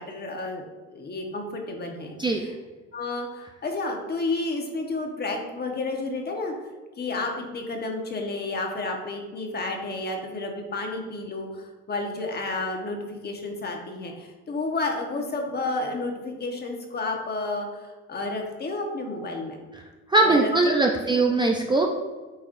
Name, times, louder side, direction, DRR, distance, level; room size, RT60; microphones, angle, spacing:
voice 1, 0.0-2.5 2.9-6.5 7.0-19.6 20.2-21.2, left 2 dB, 30° left, 2 dB, 1.2 m, -31 dB
voice 2, 20.1-21.9, right 2 dB, 15° right, 1 dB, 0.5 m, -21 dB
8.4 x 4.6 x 2.6 m, 1.3 s
cardioid pair, 105°, 32 cm